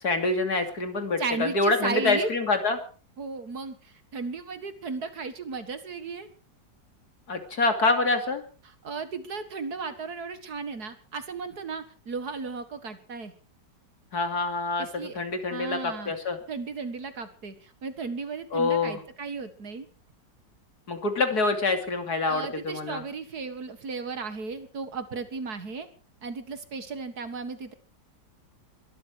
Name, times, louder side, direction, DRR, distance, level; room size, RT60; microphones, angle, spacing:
voice 1, 0.0-2.8 7.3-8.4 14.1-16.4 18.5-19.0 20.9-23.0, left 3 dB, 60° left, 7 dB, 3.1 m, -26 dB
voice 2, 1.2-2.3 3.2-6.3 8.8-13.3 14.8-15.2 15.5-16.1 16.5-19.9 22.3-25.9 26.2-27.7, right 4 dB, 60° right, 11 dB, 2.2 m, -35 dB
22.0 x 13.0 x 4.8 m, 0.39 s
omnidirectional pair, 1.9 m